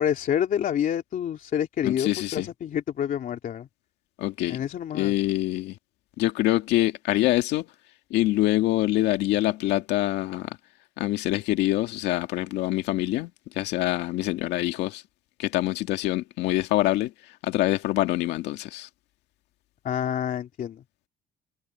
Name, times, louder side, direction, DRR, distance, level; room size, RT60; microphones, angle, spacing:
voice 1, 0.0-3.7 4.5-5.1 19.8-20.8, left 9 dB, 55° left, 3.2 m, -28 dB
voice 2, 1.8-2.5 4.2-4.6 4.9-5.7 6.2-7.7 8.1-10.5 11.0-13.3 13.6-15.0 15.4-17.1 17.4-18.9, left 16 dB, 85° left, 2.0 m, -25 dB
cardioid pair, 110°, 17 cm